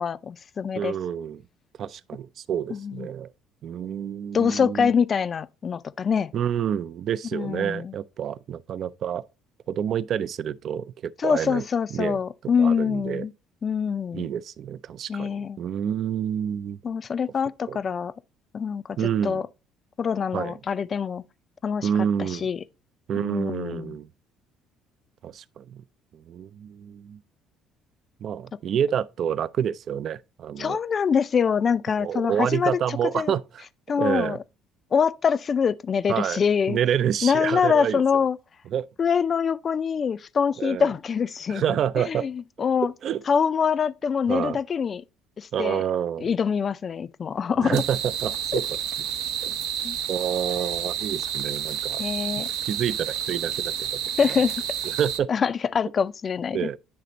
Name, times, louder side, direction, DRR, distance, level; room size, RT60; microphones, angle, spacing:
voice 1, 0.0-0.9 2.7-3.1 4.3-6.3 7.3-7.9 11.2-13.3 13.6-14.3 15.1-15.6 16.8-18.1 18.5-18.8 19.2-19.4 20.0-21.2 21.6-21.9 22.2-22.6 23.2-24.0 30.6-32.7 33.1-33.3 33.9-34.4 34.9-36.8 37.2-38.4 39.0-41.6 42.1-42.9 43.3-45.0 45.4-45.8 46.2-47.8 48.5-48.6 49.8-50.0 52.0-52.5 54.2-54.5 55.3-56.7, left 6 dB, 35° left, 0.4 m, -24 dB
voice 2, 0.8-1.4 1.8-3.3 3.6-4.9 6.3-9.2 9.7-11.6 11.9-12.2 12.6-13.3 14.1-16.8 17.7-17.8 19.0-19.4 20.3-20.6 21.8-22.5 23.1-24.1 25.2-25.8 26.1-27.2 28.2-30.8 32.0-33.6 34.0-34.4 36.1-36.4 36.7-38.2 38.7-38.8 40.6-40.9 41.5-42.3 43.0-43.2 44.3-44.6 45.5-46.3 47.6-48.6 49.4-49.5 50.1-52.0 52.3-53.9 54.3-54.4 54.8-55.3 56.5-56.8, right 9 dB, 50° right, 0.4 m, -28 dB
sound 1, 47.7-55.2, right 9 dB, 85° right, 0.8 m, -30 dB
9.5 x 3.3 x 3.9 m
cardioid pair, 125°, 0 cm